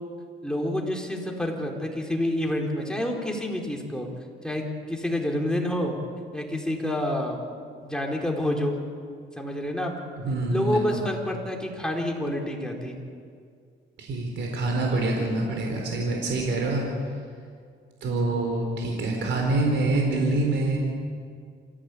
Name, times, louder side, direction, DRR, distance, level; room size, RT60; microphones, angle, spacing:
voice 1, 0.4-4.1 4.4-6.0 6.3-7.4 7.8-8.7 9.4-9.9 10.5-13.0, left 1 dB, 5° left, 0 dB, 4.3 m, -28 dB
voice 2, 10.2-11.1 14.0-16.8 18.0-20.8, right 2 dB, 70° right, 1 dB, 4.5 m, -26 dB
27.5 x 16.0 x 8.6 m, 2.1 s
cardioid pair, 90°, 20 cm